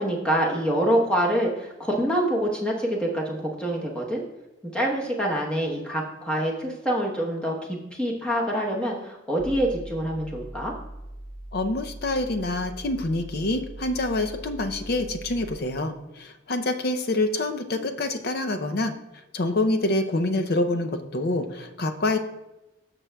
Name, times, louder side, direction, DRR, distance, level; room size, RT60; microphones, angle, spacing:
voice 1, 0.0-4.2 4.7-10.7, equal, 5° left, -3 dB, 1.0 m, -26 dB
sound 1, 9.4-15.6, right 1 dB, 25° left, 1.2 m, -41 dB
voice 2, 11.5-18.9 19.3-22.2, left 2 dB, 50° left, 7 dB, 0.5 m, -26 dB
13.0 x 6.0 x 2.3 m, 0.97 s
head